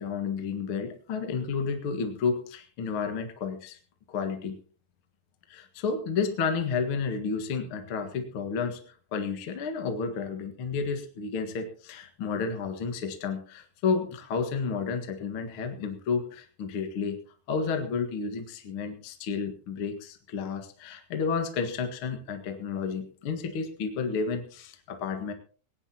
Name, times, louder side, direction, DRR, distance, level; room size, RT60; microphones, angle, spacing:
voice 1, 0.0-3.8 4.1-4.6 5.5-17.2 17.5-25.3, left 5 dB, 45° left, 5 dB, 2.0 m, -31 dB
18.5 x 18.0 x 2.9 m, 0.39 s
omnidirectional pair, 4.1 m